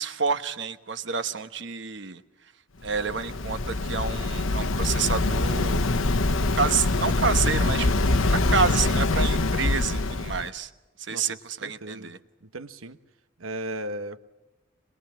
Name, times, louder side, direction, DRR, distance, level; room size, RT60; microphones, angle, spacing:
voice 1, 0.0-2.2 2.8-5.8 6.5-8.0 8.3-10.7 11.0-12.2, right 5 dB, 55° right, 10 dB, 1.1 m, -28 dB
Waves surf, 2.8-10.5, left 2 dB, 75° left, 1.1 m, -24 dB
voice 2, 11.1-12.1 12.4-13.0 13.4-14.2, right 1 dB, 80° right, 11 dB, 1.1 m, -36 dB
22.5 x 21.5 x 7.5 m, 1.1 s
head